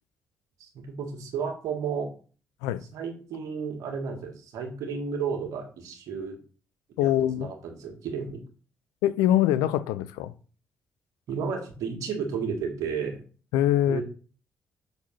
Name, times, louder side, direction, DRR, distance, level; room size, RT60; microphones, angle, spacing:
voice 1, 0.6-2.1 2.9-6.4 7.0-7.1 7.4-8.4 11.3-13.2 13.8-14.0, right 6 dB, 70° right, 1.8 m, -32 dB
voice 2, 7.0-7.5 9.0-10.3 13.5-14.0, left 12 dB, 75° left, 0.4 m, -23 dB
6.1 x 4.0 x 5.6 m
hypercardioid pair, 45°, 6 cm